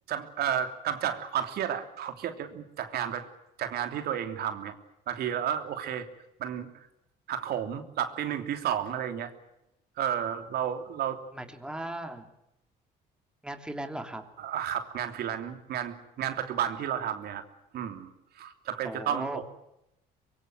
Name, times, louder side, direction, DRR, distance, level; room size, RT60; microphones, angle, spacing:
voice 1, 0.1-3.3 3.6-4.7 5.1-6.1 6.4-6.9 7.3-9.3 10.0-11.2 14.4-17.4 17.7-19.4, right 9 dB, 70° right, 7 dB, 3.2 m, -32 dB
voice 2, 11.3-12.3 13.4-14.2 18.8-19.4, right 1 dB, 5° right, 6 dB, 2.9 m, -37 dB
25.0 x 23.0 x 7.8 m, 0.87 s
cardioid pair, 110°, 17 cm